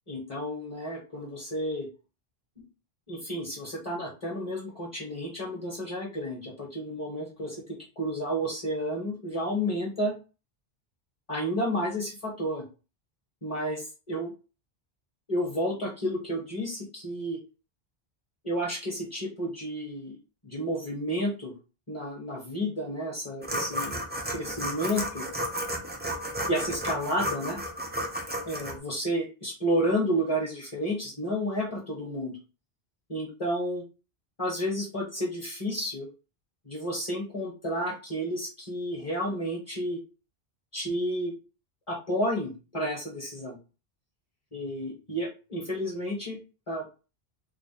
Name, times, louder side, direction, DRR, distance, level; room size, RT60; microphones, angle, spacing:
voice 1, 0.1-1.9 2.6-2.7 3.1-7.6 8.0-10.1 11.3-12.6 13.4-14.3 15.3-17.4 18.4-20.2 20.4-21.5 21.9-25.3 26.5-27.6 28.5-32.3 33.1-33.8 34.4-36.1 36.6-40.0 40.7-41.3 41.9-43.6 44.5-46.4 46.7-46.8, equal, 30° left, -3 dB, 1.2 m, -31 dB
sound 1, 23.4-28.7, equal, 15° right, 0.5 m, -33 dB
3.1 x 2.4 x 4.1 m, 0.32 s
omnidirectional pair, 1.0 m